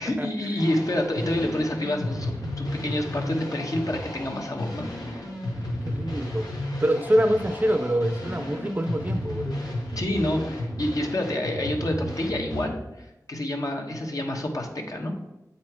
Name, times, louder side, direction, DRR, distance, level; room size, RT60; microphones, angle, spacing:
voice 1, 0.0-5.2 10.0-15.1, left 1 dB, 60° left, 2 dB, 1.1 m, -28 dB
sound 1, 0.6-12.6, left 1 dB, 90° left, 1.5 m, -33 dB
voice 2, 5.8-6.5 6.8-9.6, equal, 25° right, 8 dB, 0.5 m, -25 dB
8.0 x 4.2 x 4.4 m, 0.97 s
wide cardioid pair, 60°, 7 cm